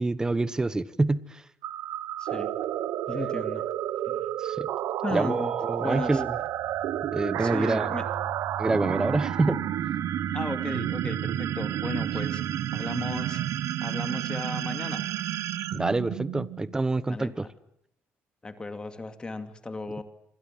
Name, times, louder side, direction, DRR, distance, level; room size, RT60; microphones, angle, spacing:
voice 1, 0.0-1.4 4.4-4.7 5.1-6.4 7.1-7.9 8.6-9.6 15.7-17.5, right 2 dB, 15° right, 1.1 m, -27 dB
sound 1, 1.6-16.7, right 12 dB, 80° right, 1.4 m, -31 dB
voice 2, 2.2-2.5 3.1-3.7 4.0-4.3 5.0-5.5 5.8-6.2 7.4-8.0 10.3-12.4 12.7-13.4 13.8-15.0 17.1-17.5 18.4-20.0, left 3 dB, 20° left, 2.5 m, -35 dB
sound 2, 6.0-13.7, right 5 dB, 35° right, 1.9 m, -41 dB
26.5 x 26.0 x 7.6 m
cardioid pair, 150°, 5 cm